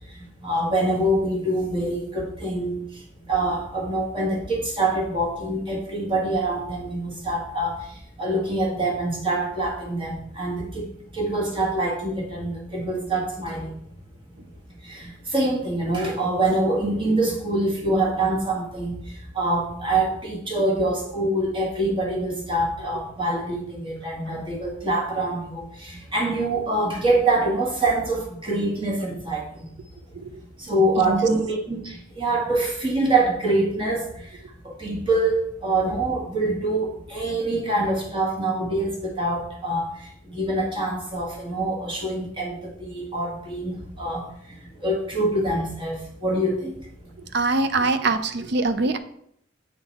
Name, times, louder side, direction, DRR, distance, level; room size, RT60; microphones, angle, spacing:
voice 1, 0.4-2.8 3.3-7.8 8.2-10.9 11.1-13.7 14.8-18.9 19.3-29.4 30.6-34.0 34.6-39.9 40.3-44.3 44.8-46.7, right 2 dB, 25° right, -1 dB, 1.5 m, -25 dB
voice 2, 47.3-49.0, right 3 dB, 55° right, 10 dB, 0.5 m, -23 dB
7.8 x 3.9 x 4.1 m, 0.71 s
head